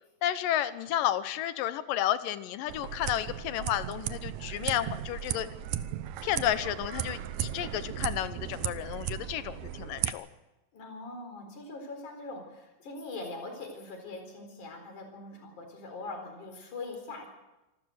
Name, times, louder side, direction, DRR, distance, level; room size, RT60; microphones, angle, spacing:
voice 1, 0.2-5.5 6.2-10.3, left 12 dB, 80° left, 13 dB, 2.5 m, -31 dB
sound 1, 2.7-10.1, right 11 dB, 70° right, 1.9 m, -36 dB
voice 2, 10.7-17.3, left 3 dB, 60° left, 3 dB, 5.6 m, -42 dB
26.5 x 13.5 x 8.0 m, 1.0 s
omnidirectional pair, 3.9 m